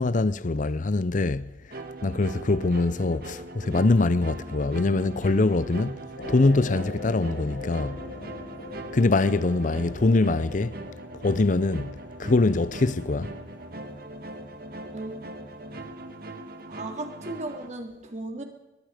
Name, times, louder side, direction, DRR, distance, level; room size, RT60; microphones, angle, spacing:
voice 1, 0.0-1.5 2.0-6.0 6.3-8.0 8.9-10.7 11.1-11.9 12.2-13.3, left 2 dB, 45° left, 0.6 m, -23 dB
sound 1, 1.7-17.7, right 2 dB, 60° right, 2.2 m, -40 dB
sound 2, 6.2-14.9 15.5-15.6, left 2 dB, 70° left, 3.1 m, -42 dB
voice 2, 14.8-15.2 16.7-18.4, right 2 dB, 40° right, 3.4 m, -36 dB
23.0 x 22.0 x 5.1 m
head